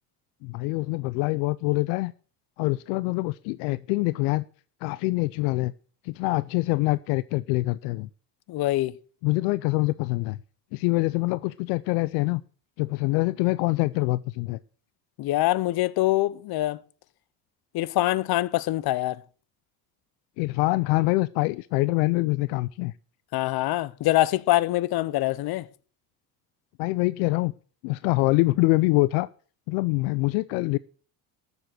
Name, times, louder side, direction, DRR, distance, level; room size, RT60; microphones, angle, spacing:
voice 1, 0.4-2.1 2.6-4.5 4.8-5.7 6.0-8.1 9.2-10.4 10.7-12.4 12.8-14.6 20.4-22.9 26.8-27.5 27.8-29.3 29.7-30.8, left 22 dB, 80° left, 0.6 m, -25 dB
voice 2, 8.5-9.0 15.2-16.8 17.7-19.2 23.3-25.7, left 16 dB, 60° left, 0.8 m, -24 dB
13.5 x 7.3 x 6.6 m
supercardioid pair, 80°, 42 cm